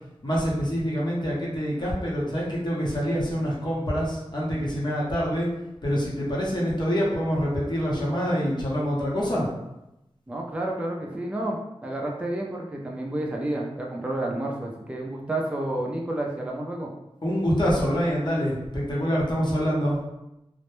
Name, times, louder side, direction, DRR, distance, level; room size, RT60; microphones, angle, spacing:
voice 1, 0.2-5.5 5.8-9.5 17.2-20.0, equal, 45° left, -5 dB, 0.8 m, -26 dB
voice 2, 10.3-16.9, right 1 dB, 10° right, -1 dB, 0.4 m, -30 dB
2.1 x 2.0 x 3.0 m, 0.89 s
wide cardioid pair, 75°, 11 cm